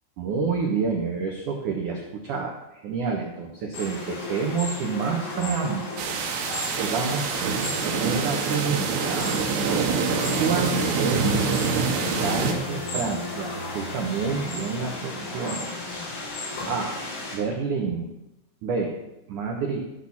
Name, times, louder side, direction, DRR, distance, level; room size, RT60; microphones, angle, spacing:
voice 1, 0.2-9.3 10.4-11.3 11.7-16.0 16.7-17.0 17.3-18.1 18.6-18.9 19.3-19.8, right 5 dB, 85° right, 1 dB, 1.8 m, -29 dB
sound 1, 3.7-17.4, left 2 dB, 75° left, 6.9 m, -36 dB
sound 2, 6.0-12.5, right 5 dB, 70° right, 3.3 m, -25 dB
sound 3, 8.0-16.2, left 4 dB, 30° left, 1.7 m, -39 dB
13.5 x 6.4 x 7.2 m, 0.91 s
omnidirectional pair, 5.6 m